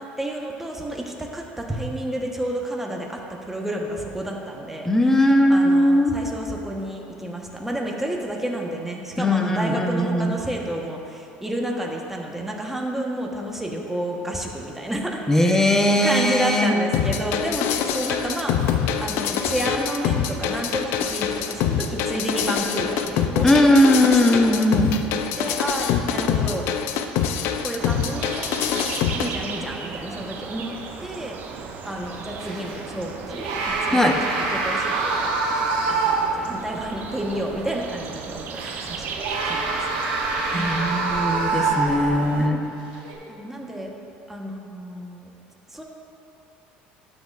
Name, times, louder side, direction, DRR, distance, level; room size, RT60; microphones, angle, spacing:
voice 1, 0.0-18.7 19.0-24.7 25.4-26.7 27.6-28.5 29.2-33.5 33.8-35.3 35.9-39.2 39.4-39.8 40.5-40.8 43.3-43.9 44.3-45.3 45.7-45.8, right 1 dB, 5° right, 0 dB, 1.1 m, -30 dB
voice 2, 4.8-6.1 9.2-10.3 15.3-16.7 23.4-24.9 33.9-34.1 40.5-42.6, left 1 dB, 10° left, 2 dB, 0.9 m, -19 dB
sound 1, 16.9-29.3, left 8 dB, 65° left, 0.5 m, -24 dB
sound 2, 27.8-42.5, right 5 dB, 50° right, 0.7 m, -36 dB
sound 3, 32.4-32.8 33.3-36.5 36.9-37.0 38.5-42.2 42.9-43.1, right 4 dB, 80° right, 1.2 m, -25 dB
12.5 x 6.5 x 2.5 m, 3.0 s
supercardioid pair, 95°, 4 cm